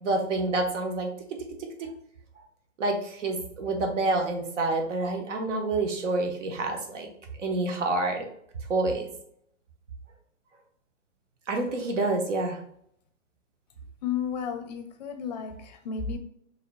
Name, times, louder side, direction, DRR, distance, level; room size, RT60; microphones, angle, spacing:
voice 1, 0.0-1.1 1.6-1.9 2.8-7.1 7.4-8.2 8.7-9.1 11.5-12.6, right 2 dB, 75° right, 3 dB, 1.2 m, -28 dB
voice 2, 14.0-16.2, left 7 dB, 35° left, 7 dB, 0.5 m, -32 dB
4.7 x 3.0 x 2.3 m, 0.70 s
hypercardioid pair, 150°, 37 cm